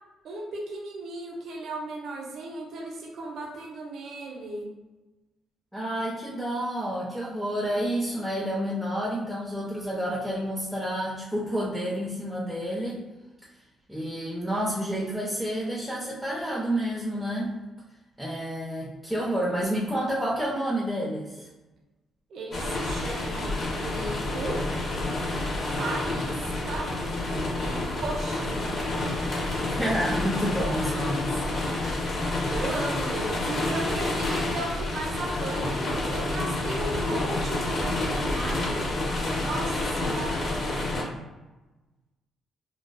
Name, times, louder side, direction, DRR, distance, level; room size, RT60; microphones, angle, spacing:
voice 1, 0.2-4.7 22.3-24.6 25.7-26.4 26.6-26.9 27.5-28.8 31.4-32.2 32.5-38.9 39.4-40.5, right 2 dB, 65° right, 0 dB, 0.5 m, -35 dB
voice 2, 5.7-13.0 13.9-17.6 18.2-21.5 29.7-31.4, equal, ahead, -6 dB, 0.4 m, -29 dB
sound 1, 22.5-41.0, left 2 dB, 55° left, 0.6 m, -29 dB
2.4 x 2.3 x 2.2 m, 1.1 s
cardioid pair, 90°, 0 cm